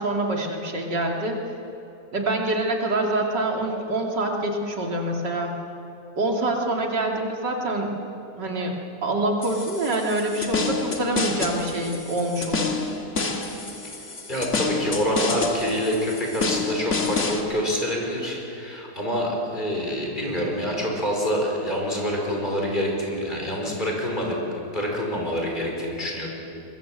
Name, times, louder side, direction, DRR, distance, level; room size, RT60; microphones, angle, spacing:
voice 1, 0.0-1.4 2.1-5.5 6.2-7.9 8.4-8.8 9.0-12.8, right 1 dB, 90° right, 0 dB, 3.3 m, -25 dB
sound 1, 9.4-17.4, left 4 dB, 45° left, 2.1 m, -29 dB
voice 2, 14.0-24.4 24.7-26.3, equal, 25° left, -1 dB, 5.4 m, -26 dB
22.5 x 22.5 x 7.9 m, 2.9 s
omnidirectional pair, 1.8 m